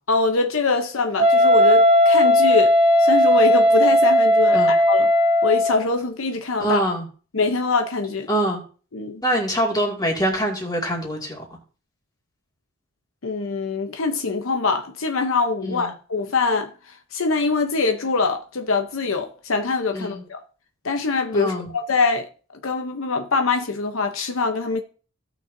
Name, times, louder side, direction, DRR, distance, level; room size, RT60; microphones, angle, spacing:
voice 1, 0.1-2.7 3.0-5.1 5.4-6.8 7.3-8.3 8.9-9.2 13.2-16.7 17.1-20.4 20.8-22.3 22.6-24.8, left 4 dB, 70° left, 0.8 m, -23 dB
Wind instrument woodwind instrument, 1.2-5.9, equal, 30° right, 2.1 m, -16 dB
voice 2, 6.6-7.1 8.3-8.6 9.2-11.5 15.6-15.9 19.9-20.2 21.3-21.7, equal, 20° left, 2.3 m, -24 dB
16.0 x 6.1 x 2.7 m
head